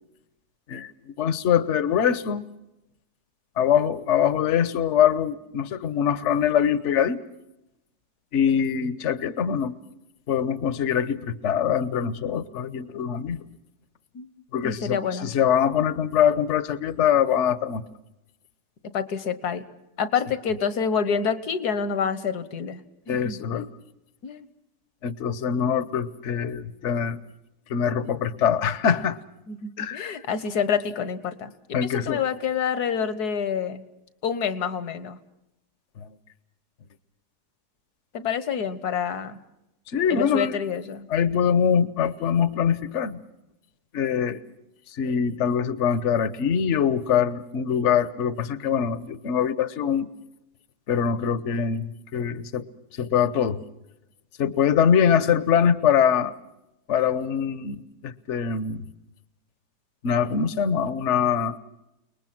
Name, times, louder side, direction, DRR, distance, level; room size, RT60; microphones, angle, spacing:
voice 1, 0.7-2.4 3.6-7.2 8.3-9.7 10.3-13.4 14.5-17.8 23.1-23.7 25.0-27.2 27.7-29.2 29.8-30.1 31.7-32.2 36.0-36.1 39.9-40.6 41.1-43.2 43.9-44.4 44.9-50.1 50.9-52.6 53.0-53.6 54.4-56.3 56.9-58.8 60.0-61.6, left 8 dB, 50° left, 15 dB, 1.2 m, -23 dB
voice 2, 14.6-15.3 18.9-19.6 20.0-23.7 24.2-24.5 29.5-33.8 34.2-35.2 38.1-39.4 40.1-41.1, left 7 dB, 70° left, 13 dB, 1.8 m, -28 dB
30.0 x 20.5 x 6.1 m, 0.87 s
omnidirectional pair, 1.8 m